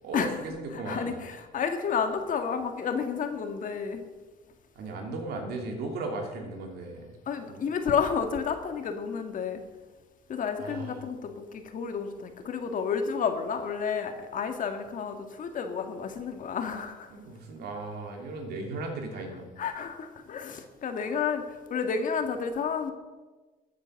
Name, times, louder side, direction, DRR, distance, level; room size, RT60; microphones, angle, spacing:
voice 1, 0.0-1.2 4.7-7.1 7.5-7.7 10.6-11.0 17.1-19.5, right 2 dB, 75° right, 2 dB, 3.0 m, -36 dB
voice 2, 0.7-4.1 7.3-9.6 10.3-17.1 19.6-22.9, left 6 dB, 50° left, 6 dB, 1.8 m, -31 dB
15.0 x 8.0 x 6.5 m, 1.3 s
cardioid pair, 110°, 17 cm